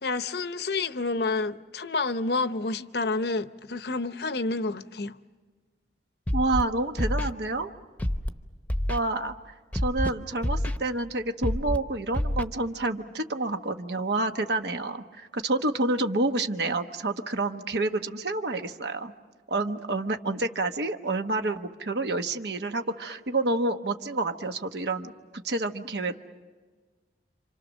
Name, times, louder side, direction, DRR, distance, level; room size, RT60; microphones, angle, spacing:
voice 1, 0.0-5.2, left 3 dB, 60° left, 0.7 m, -29 dB
Scratching (performance technique), 6.3-6.6 7.0-7.3 8.0-8.3 8.7-9.0 9.7-10.1 10.4-10.8 11.4-11.8 12.1-12.4, left 1 dB, 10° left, 0.9 m, -27 dB
voice 2, 6.3-7.7 8.9-9.5 9.8-19.1 19.5-26.2, right 2 dB, 65° right, 1.1 m, -29 dB
28.5 x 26.5 x 6.3 m
head